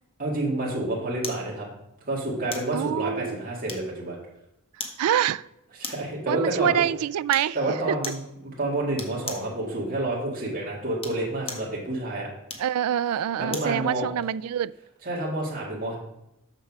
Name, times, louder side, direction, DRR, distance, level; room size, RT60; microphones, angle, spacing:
voice 1, 0.2-1.7 2.1-4.2 5.8-6.8 7.5-12.3 13.4-14.1 15.0-16.0, right 2 dB, 40° right, 2.2 m, -29 dB
sound 1, 1.2-1.5 2.5-2.8 3.7-4.1 4.8-5.0 5.8-6.2 7.3-7.5 8.0-8.3 9.0-9.5 10.9-11.7 12.5-13.8 14.2-14.3, left 4 dB, 25° left, 1.0 m, -37 dB
voice 2, 2.7-3.4 5.0-5.4 6.3-8.0 12.6-14.7, right 10 dB, 75° right, 0.3 m, -26 dB
6.6 x 6.5 x 6.1 m
head